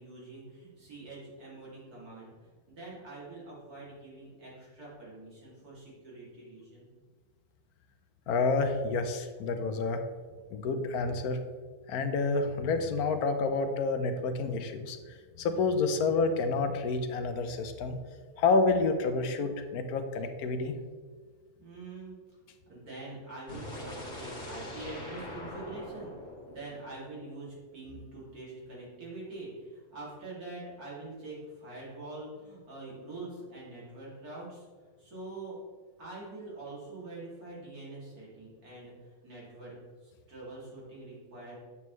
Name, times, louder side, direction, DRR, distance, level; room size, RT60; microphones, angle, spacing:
voice 1, 0.0-2.3 2.7-6.9 21.6-22.1 22.6-26.1 26.5-35.6 36.0-38.9 39.2-39.7 40.0-41.6, right 2 dB, 80° right, -6 dB, 3.1 m, -45 dB
voice 2, 8.3-10.0 10.5-11.4 11.9-18.0 18.4-20.8, left 3 dB, 85° left, 8 dB, 1.2 m, -29 dB
sound 1, 23.5-27.5, left 1 dB, 35° left, 1.7 m, -43 dB
8.3 x 7.0 x 3.1 m, 1.5 s
omnidirectional pair, 1.6 m